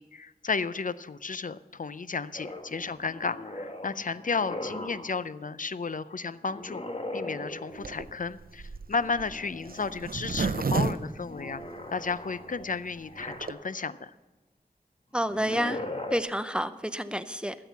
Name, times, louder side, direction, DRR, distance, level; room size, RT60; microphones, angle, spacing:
voice 1, 0.0-6.8 7.1-11.6 11.9-14.1, left 4 dB, 55° left, 15 dB, 0.5 m, -33 dB
sound 1, 2.3-5.2 6.5-8.1 9.0-10.0 10.4-13.9 15.2-16.2, left 1 dB, 35° left, 1.4 m, -40 dB
Zipper (clothing), 7.8-12.1 12.6-12.7 12.9-13.0 13.2-13.5, right 4 dB, 60° right, 0.6 m, -31 dB
voice 2, 15.1-15.8 16.1-17.6, equal, 5° right, 12 dB, 0.7 m, -29 dB
13.0 x 7.8 x 6.9 m, 1.2 s
wide cardioid pair, 40°, 17 cm